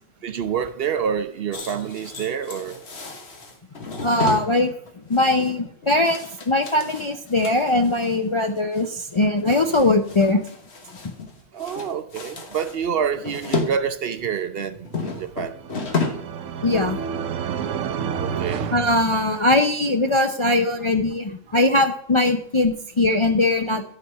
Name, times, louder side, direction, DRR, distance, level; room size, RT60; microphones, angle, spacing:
voice 1, 0.2-2.8 11.5-15.5 18.2-18.7, right 7 dB, 60° right, 11 dB, 0.7 m, -27 dB
sound 1, 1.5-8.2 8.6-8.9 9.1-11.3 11.6-13.7 14.1-16.4 16.6-16.8 17.2-17.4, left 4 dB, 60° left, 1.5 m, -32 dB
voice 2, 4.0-4.7 5.1-10.4 11.0-11.1 16.6-17.0 18.7-23.8, left 2 dB, 40° left, 5 dB, 0.4 m, -20 dB
sound 2, 15.2-19.8, right 7 dB, 85° right, 1.0 m, -30 dB
12.5 x 4.3 x 5.4 m, 0.64 s
omnidirectional pair, 1.3 m